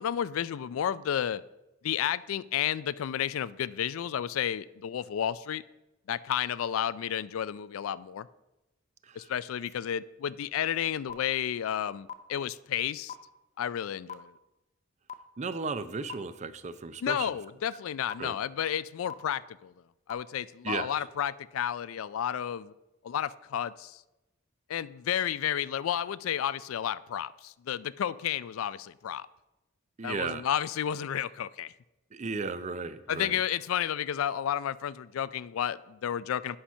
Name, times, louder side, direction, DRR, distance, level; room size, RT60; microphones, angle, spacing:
voice 1, 0.0-1.4 1.8-5.6 6.1-8.3 9.2-13.1 13.6-14.3 17.0-19.7 20.1-22.7 23.0-24.0 24.7-29.3 30.0-31.7 33.1-36.6, left 9 dB, 90° left, 18 dB, 0.3 m, -32 dB
sound 1, 11.1-11.2 12.1-12.2 13.1-13.2 14.1-14.2 15.1-15.2 16.1-16.2 17.1-17.2 18.1-18.2 19.1-19.2 20.1-20.2, left 8 dB, 35° left, 0.5 m, -38 dB
voice 2, 15.4-17.4 18.2-18.4 20.6-21.0 30.0-30.5 32.1-33.4, right 4 dB, 35° right, 13 dB, 0.4 m, -35 dB
8.7 x 5.7 x 5.5 m, 0.97 s
head